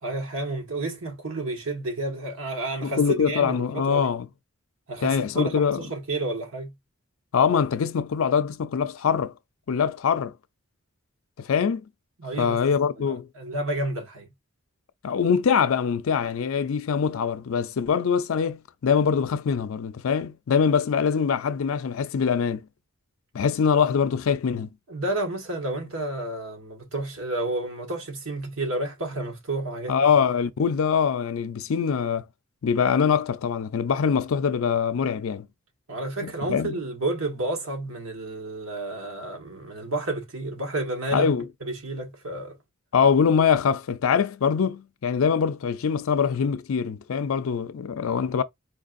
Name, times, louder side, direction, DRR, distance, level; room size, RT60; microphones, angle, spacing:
voice 1, 0.0-4.1 4.9-6.7 12.2-12.6 13.0-14.3 24.9-29.9 35.9-41.3 41.6-42.5, right 2 dB, 75° right, 1.4 m, -31 dB
voice 2, 2.8-4.3 5.0-5.8 7.3-9.3 9.7-10.3 11.4-11.8 12.4-13.3 15.0-22.6 23.3-24.7 29.9-32.2 32.6-35.5 36.2-36.8 41.1-41.4 42.9-48.4, left 6 dB, 75° left, 0.4 m, -23 dB
4.5 x 2.5 x 2.5 m
head